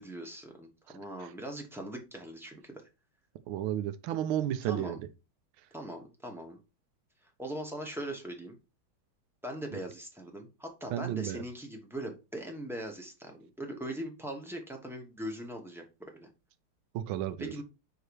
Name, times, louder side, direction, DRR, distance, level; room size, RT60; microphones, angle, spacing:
voice 1, 0.0-2.9 4.6-5.0 5.7-6.6 7.4-8.6 9.4-16.3 17.4-17.6, right 1 dB, 5° right, 0.4 m, -40 dB
voice 2, 3.5-5.0 10.9-11.4 16.9-17.5, right 11 dB, 80° right, 1.4 m, -32 dB
4.8 x 4.7 x 4.6 m
omnidirectional pair, 2.3 m